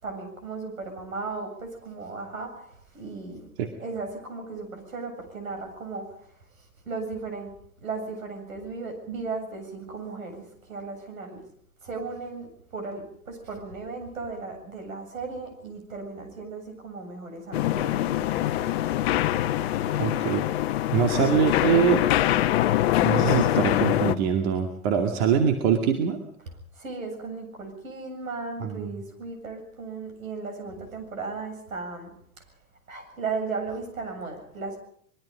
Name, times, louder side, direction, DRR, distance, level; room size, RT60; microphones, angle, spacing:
voice 1, 0.0-3.5 3.8-7.5 7.8-11.4 11.8-19.0 19.9-20.0 26.7-32.4 32.9-34.8, right 4 dB, 70° right, 5 dB, 7.6 m, -36 dB
sound 1, 17.5-24.2, left 13 dB, 45° left, 1.1 m, -24 dB
voice 2, 20.0-20.5 20.9-22.0 23.0-26.2 28.6-28.9, right 7 dB, 45° right, 4 dB, 2.4 m, -23 dB
24.5 x 22.5 x 5.2 m, 0.64 s
figure-of-eight pair, 100°, 43 cm